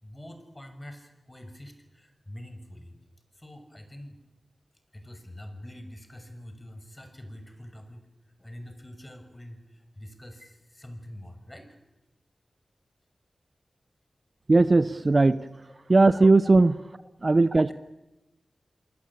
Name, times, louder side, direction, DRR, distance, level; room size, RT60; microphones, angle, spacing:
voice 1, 0.0-3.0 3.3-4.2 4.9-11.8 16.4-16.5, left 1 dB, 25° left, 7 dB, 6.2 m, -45 dB
voice 2, 14.5-15.4 15.9-16.7 17.2-17.7, right 3 dB, 45° right, 15 dB, 0.9 m, -18 dB
28.0 x 20.5 x 8.8 m, 0.99 s
cardioid pair, 40°, 0 cm